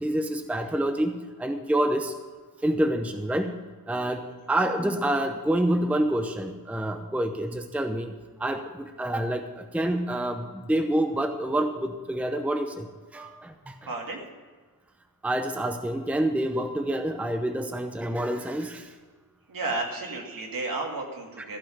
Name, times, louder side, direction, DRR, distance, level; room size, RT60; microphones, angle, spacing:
voice 1, 0.0-2.1 2.6-3.5 3.9-8.1 8.4-12.9 13.1-13.7 15.2-18.9, right 1 dB, 5° right, 6 dB, 0.7 m, -27 dB
voice 2, 13.9-14.2 19.5-21.6, right 3 dB, 65° right, 0 dB, 2.5 m, -33 dB
15.0 x 5.5 x 8.7 m, 1.4 s
wide cardioid pair, 135°, 37 cm